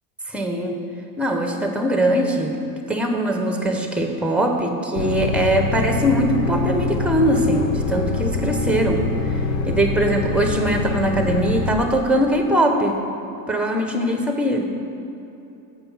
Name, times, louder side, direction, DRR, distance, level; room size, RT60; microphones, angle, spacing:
voice 1, 0.3-0.8 1.2-2.5 2.9-9.3 9.7-13.0 13.5-14.7, right 1 dB, ahead, 3 dB, 1.0 m, -21 dB
sound 1, 4.9-11.7, left 3 dB, 85° left, 1.0 m, -24 dB
7.3 x 5.2 x 6.2 m, 2.8 s
supercardioid pair, 90°, 48 cm